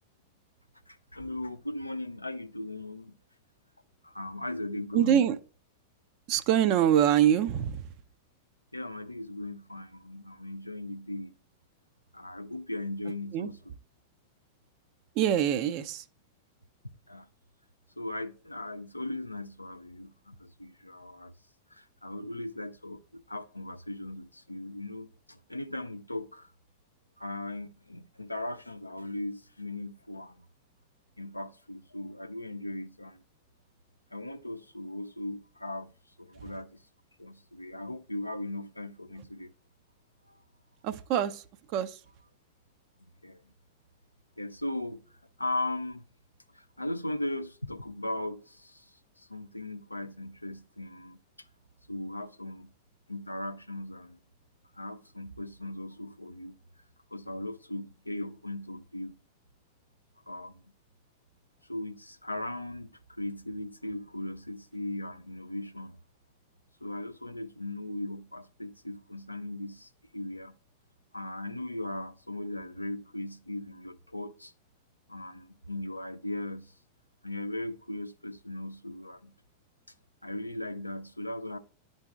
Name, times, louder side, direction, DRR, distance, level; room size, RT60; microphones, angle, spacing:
voice 1, 0.9-3.2 4.0-5.3 8.7-11.3 12.1-13.7 17.1-17.3 18.0-21.3 21.7-26.5 27.2-30.5 31.2-33.2 34.1-35.9 36.2-36.8 37.2-39.5 40.3-40.4 43.2-43.5 44.4-45.0 45.4-46.0 46.5-51.5 51.9-52.7 53.1-54.2 54.7-56.6 57.1-59.2 60.3-60.6 61.7-66.0 66.8-70.6 71.1-74.5 75.1-76.7 77.2-79.3 80.2-81.6, left 1 dB, 85° left, 0.5 m, -38 dB
voice 2, 4.9-5.3 6.3-7.8 13.3-13.5 15.2-16.0 40.8-41.4 41.7-41.9, right 10 dB, 40° right, 0.4 m, -24 dB
11.0 x 4.0 x 2.4 m
figure-of-eight pair, 90°, 0 cm